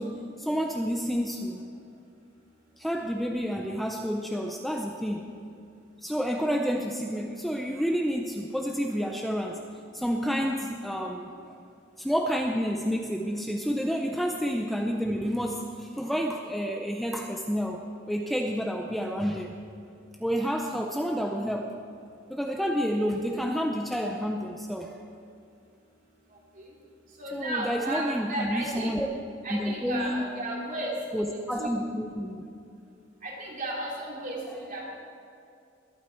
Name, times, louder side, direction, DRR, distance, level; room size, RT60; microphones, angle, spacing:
voice 1, 0.0-1.6 2.8-5.3 6.0-9.6 9.9-11.3 12.0-19.5 20.2-21.8 22.3-25.0 27.3-29.1 29.5-30.2 31.1-32.4, equal, ahead, 2 dB, 0.5 m, -29 dB
voice 2, 27.2-28.9 29.4-30.9 31.6-31.7 33.2-34.8, right 1 dB, 45° right, -3 dB, 3.0 m, -34 dB
20.5 x 8.8 x 4.5 m, 2.5 s
head